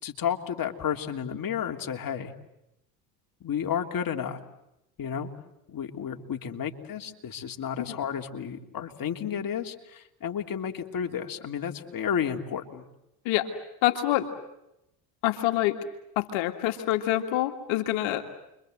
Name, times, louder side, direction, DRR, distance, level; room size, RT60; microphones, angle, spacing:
voice 1, 0.0-2.3 3.4-4.4 5.0-5.3 5.7-12.9, left 8 dB, 45° left, 5 dB, 3.1 m, -32 dB
voice 2, 13.8-14.3 15.2-15.8 16.2-18.2, left 15 dB, 70° left, 5 dB, 2.2 m, -26 dB
30.0 x 24.0 x 7.9 m, 0.86 s
supercardioid pair, 75°, 49 cm